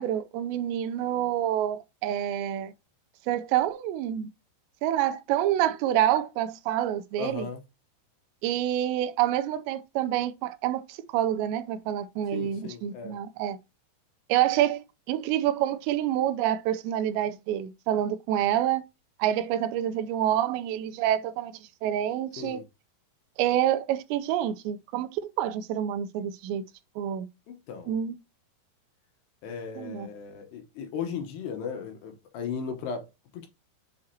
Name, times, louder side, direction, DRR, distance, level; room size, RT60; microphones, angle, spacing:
voice 1, 0.0-2.7 3.3-4.3 4.8-7.5 8.4-13.6 14.3-18.8 19.2-21.5 21.8-22.6 23.4-26.6 27.0-27.3 27.9-28.1 29.8-30.1, right 11 dB, 90° right, 2.9 m, -27 dB
voice 2, 7.2-7.6 12.3-13.2 22.4-22.6 27.5-28.0 29.4-33.1 33.3-33.5, left 6 dB, 75° left, 3.1 m, -36 dB
7.5 x 4.8 x 2.8 m
omnidirectional pair, 5.0 m